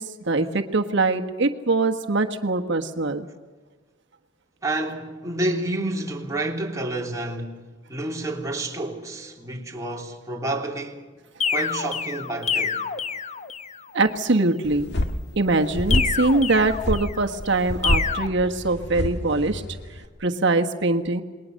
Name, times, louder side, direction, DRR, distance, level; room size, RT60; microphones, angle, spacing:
voice 1, 0.0-3.3 13.9-14.9 15.3-19.6 20.2-21.2, right 3 dB, 65° right, 1.5 m, -23 dB
voice 2, 4.6-11.1 11.5-12.8, right 2 dB, 15° right, 3.0 m, -29 dB
sound 1, 11.4-13.8 15.9-17.3 17.8-18.3, left 6 dB, 35° left, 0.8 m, -27 dB
sound 2, 14.7-20.1, left 1 dB, 60° left, 1.9 m, -28 dB
28.5 x 21.0 x 6.5 m
head